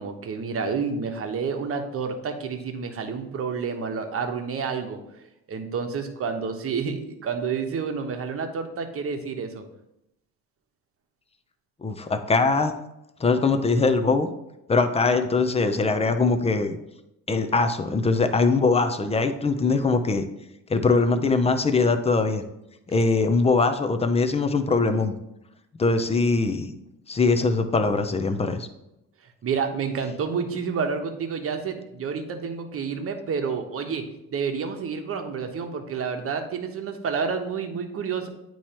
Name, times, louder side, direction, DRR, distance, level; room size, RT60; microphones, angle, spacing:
voice 1, 0.0-5.0 5.5-9.6 29.4-38.3, right 5 dB, 45° right, 5 dB, 1.0 m, -29 dB
voice 2, 11.8-12.7 13.2-14.3 14.7-16.8 17.3-20.2 20.7-22.4 22.9-25.1 25.8-26.7 27.1-28.7, left 3 dB, 20° left, 8 dB, 0.6 m, -22 dB
8.6 x 3.1 x 4.4 m, 0.87 s
supercardioid pair, 90°, 32 cm